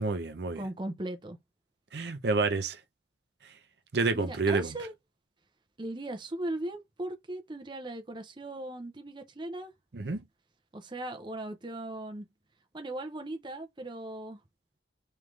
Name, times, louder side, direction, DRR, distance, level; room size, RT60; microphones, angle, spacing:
voice 1, 0.0-0.6 1.9-2.8 3.9-4.7 9.9-10.2, right 3 dB, 60° right, 0.6 m, -28 dB
voice 2, 0.6-1.4 4.1-4.9 5.8-9.7 10.7-12.3 12.7-14.4, right 1 dB, 25° right, 0.6 m, -38 dB
3.7 x 3.2 x 3.2 m
head